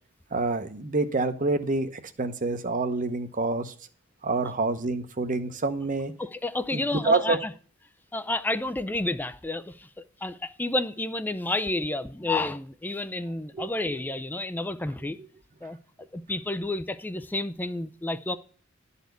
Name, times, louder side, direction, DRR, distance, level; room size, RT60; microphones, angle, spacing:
voice 1, 0.3-3.7 4.2-6.1 6.7-7.4 13.5-13.7, right 3 dB, 40° right, 0.9 m, -27 dB
voice 2, 6.2-7.5 8.1-15.2 15.6-15.8 16.1-18.4, left 2 dB, 10° left, 0.4 m, -30 dB
11.5 x 4.2 x 8.1 m
head